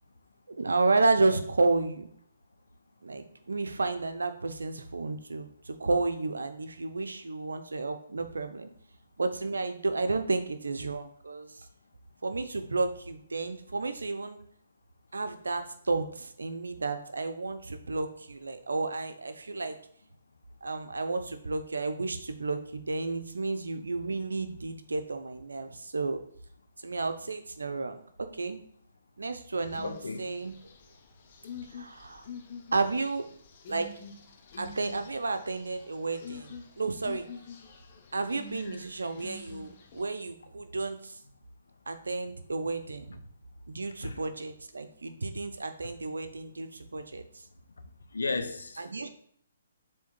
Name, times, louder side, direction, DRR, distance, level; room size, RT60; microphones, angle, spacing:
voice 1, 0.6-2.1 3.0-8.7 9.2-11.5 12.2-14.4 15.1-19.8 20.6-26.2 26.8-28.0 28.4-28.6 29.2-30.6 31.7-32.2 32.7-33.3 33.7-33.9 34.6-37.3 38.1-41.1 41.9-43.2 43.7-47.2 48.8-49.1, right 3 dB, 80° right, 0.9 m, -31 dB
sound 1, 29.7-40.1, left 5 dB, 45° left, 1.1 m, -47 dB
voice 2, 29.8-30.3 44.0-44.2 45.0-45.2 47.8-48.9, left 3 dB, 80° left, 0.9 m, -35 dB
7.2 x 3.6 x 4.5 m
figure-of-eight pair, 135°, 0 cm